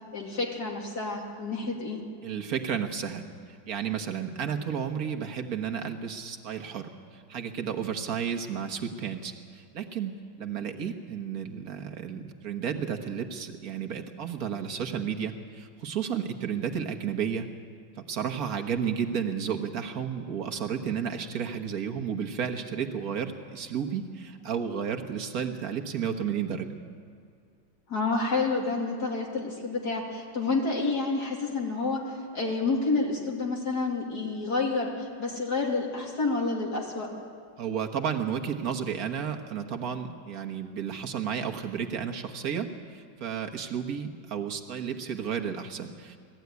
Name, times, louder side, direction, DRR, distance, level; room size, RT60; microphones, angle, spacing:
voice 1, 0.1-2.0 27.9-37.1, left 3 dB, 55° left, -1 dB, 3.0 m, -29 dB
voice 2, 2.2-17.5 18.0-26.7 37.6-46.2, right 7 dB, 55° right, 4 dB, 1.6 m, -32 dB
20.0 x 14.0 x 9.4 m, 2.4 s
omnidirectional pair, 2.1 m